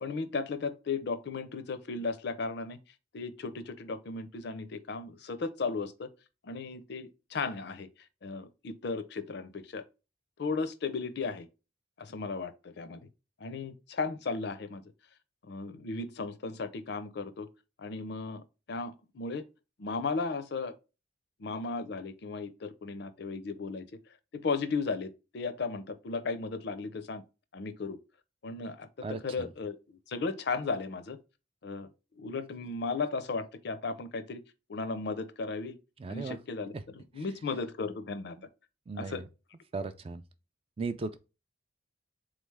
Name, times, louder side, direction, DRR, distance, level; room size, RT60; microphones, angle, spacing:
voice 1, 0.0-2.8 3.1-6.1 6.4-7.9 8.2-9.8 10.4-11.5 12.0-13.0 13.4-14.8 15.5-17.5 17.8-19.5 19.8-20.7 21.4-23.9 24.3-27.2 27.5-28.0 28.4-31.2 31.6-31.9 32.2-34.4 34.7-35.8 36.1-38.4 39.0-39.2, left 4 dB, 55° left, 0.5 m, -35 dB
voice 2, 29.0-29.5 36.0-36.4 36.7-36.8 37.2-37.3 38.4-38.5 38.9-39.3 39.7-40.2 40.8-41.2, right 3 dB, 30° right, 0.3 m, -37 dB
3.9 x 3.2 x 3.4 m
head